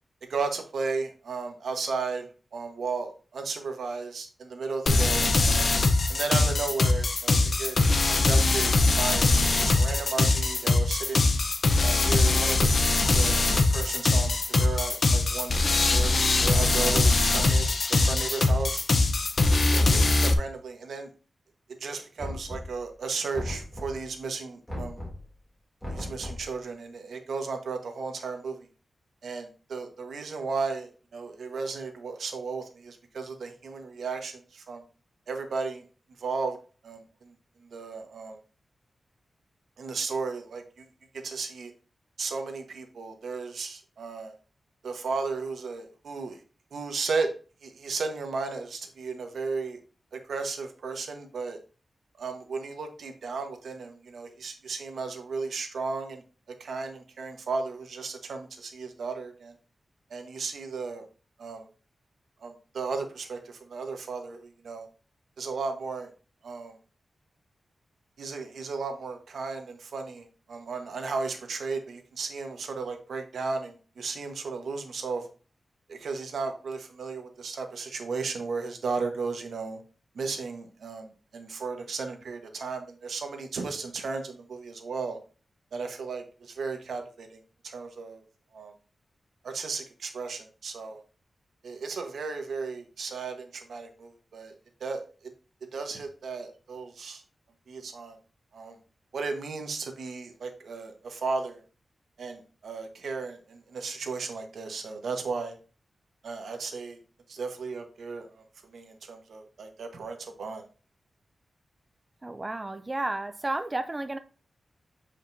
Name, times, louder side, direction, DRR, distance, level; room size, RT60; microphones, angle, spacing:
voice 1, 0.3-5.7 6.1-7.8 8.1-9.3 9.6-11.3 11.8-12.7 13.1-15.6 15.9-18.8 19.6-21.1 21.8-25.0 25.9-28.7 29.2-34.8 35.3-35.8 36.2-36.6 36.8-37.3 37.7-38.4 39.8-40.9 41.2-41.7 42.2-44.3 44.8-46.4 46.7-47.3 47.6-49.8 50.1-51.6 52.2-56.2 56.6-59.5 60.1-61.1 61.4-61.7 62.4-64.9 65.4-66.1 66.4-66.8 68.2-75.3 75.9-79.8 80.1-85.2 85.7-88.2 88.5-88.7 89.4-91.0 91.6-95.0 95.7-97.2 97.7-98.2 98.5-98.8 99.1-101.6 102.2-105.6 106.2-107.0 107.3-108.4 108.7-110.6, right 4 dB, 85° right, 1.1 m, -34 dB
sound 1, 4.9-20.3, left 3 dB, 45° left, 0.7 m, -22 dB
Knock, 22.2-22.9 23.3-24.1 24.7-25.3 25.8-26.5, left 1 dB, 5° left, 2.5 m, -37 dB
voice 2, 112.2-114.2, right 2 dB, 20° right, 0.3 m, -32 dB
7.1 x 5.1 x 2.6 m
wide cardioid pair, 140°, 0 cm